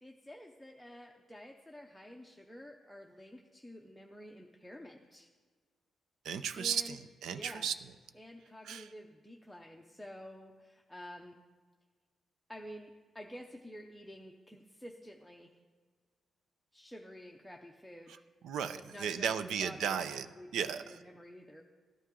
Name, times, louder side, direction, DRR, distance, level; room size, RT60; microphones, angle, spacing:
voice 1, 0.0-5.3 6.6-7.0 7.3-7.7 8.1-11.4 12.5-15.6 16.7-18.2 18.7-21.6, equal, ahead, 1 dB, 0.6 m, -50 dB
voice 2, 6.2-7.7 8.6-8.9 18.4-20.3 20.5-21.0, right 7 dB, 90° right, 11 dB, 0.6 m, -35 dB
14.5 x 12.5 x 3.8 m, 1.5 s
wide cardioid pair, 170°, 0 cm